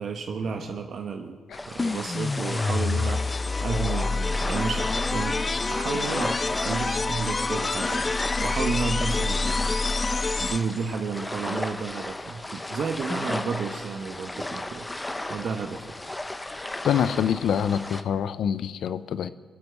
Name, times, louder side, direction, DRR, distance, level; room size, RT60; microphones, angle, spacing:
voice 1, 0.0-1.4 1.7-5.4 5.7-8.1 8.4-9.7 10.4-14.9 15.3-15.8, right 5 dB, 65° right, 5 dB, 1.1 m, -32 dB
sound 1, 1.5-18.0, left 1 dB, 15° left, 1.1 m, -35 dB
sound 2, 1.8-10.9, left 3 dB, 35° left, 0.4 m, -27 dB
voice 2, 16.8-19.3, left 8 dB, 70° left, 14 dB, 0.7 m, -25 dB
22.0 x 7.8 x 6.9 m, 1.5 s
supercardioid pair, 50°, 0 cm